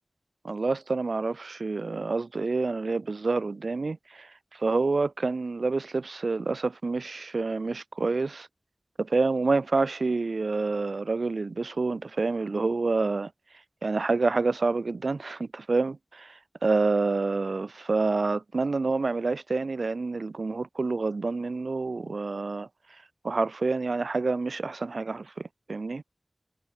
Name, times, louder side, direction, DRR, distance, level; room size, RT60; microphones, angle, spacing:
voice 1, 0.4-8.5 9.0-13.3 13.8-22.7 23.2-26.0, right 3 dB, 90° right, 1.1 m, -28 dB
wide cardioid pair, 45°, 0 cm